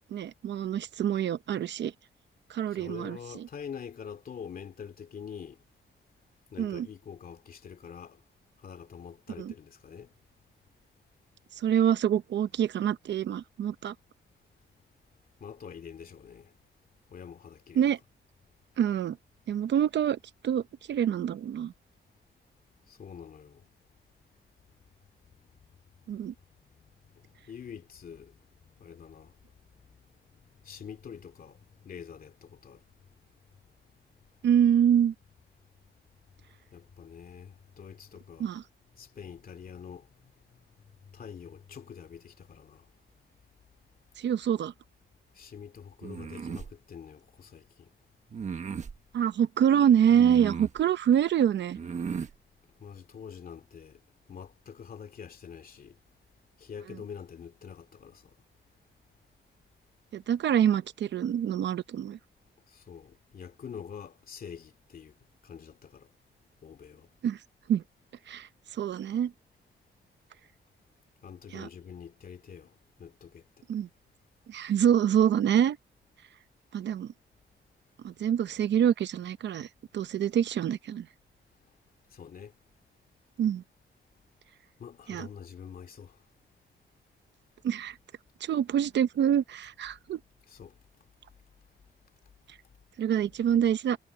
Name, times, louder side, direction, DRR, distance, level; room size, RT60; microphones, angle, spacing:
voice 1, 0.1-1.9 2.5-3.5 6.6-6.9 9.4-9.5 11.5-13.9 17.7-18.0 18.8-19.2 19.5-20.2 20.4-20.6 20.9-21.7 26.1-26.3 34.4-35.1 38.4-38.6 44.2-44.7 49.1-51.8 56.9-57.0 60.1-62.2 67.2-67.4 67.7-67.8 68.3-69.3 71.5-71.7 73.7-73.9 74.5-75.8 76.7-77.1 78.0-79.7 79.9-81.1 83.4-83.6 85.1-85.3 87.6-88.0 88.4-90.2 93.0-94.0, right 9 dB, 65° right, 0.8 m, -26 dB
voice 2, 2.7-5.6 6.5-8.2 8.6-10.1 15.4-16.5 17.1-17.8 22.9-23.7 26.7-26.8 27.1-28.4 28.8-29.4 30.6-32.9 36.7-38.5 39.0-40.3 41.1-42.9 45.3-47.9 52.8-54.0 54.3-56.0 56.6-58.3 62.7-65.2 65.4-66.1 66.6-67.1 71.2-73.5 82.1-82.5 84.8-86.2 90.5-90.8, left 7 dB, 50° left, 2.4 m, -45 dB
sound 1, 46.0-46.7 48.3-49.0 50.1-50.8 51.7-52.3, right 6 dB, 40° right, 1.2 m, -36 dB
wide cardioid pair, 165°, 19 cm